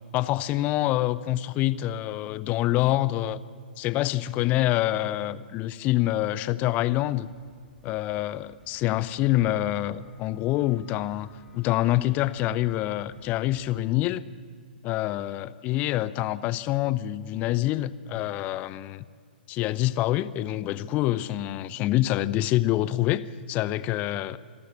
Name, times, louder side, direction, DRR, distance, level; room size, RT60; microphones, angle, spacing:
voice 1, 0.1-3.4 3.8-7.3 7.8-14.2 14.8-19.0 19.5-24.4, left 15 dB, 25° left, 0.7 m, -26 dB
sound 1, 7.1-13.8, left 2 dB, ahead, 3.2 m, -57 dB
26.5 x 12.5 x 8.6 m
figure-of-eight pair, 115°, 5 cm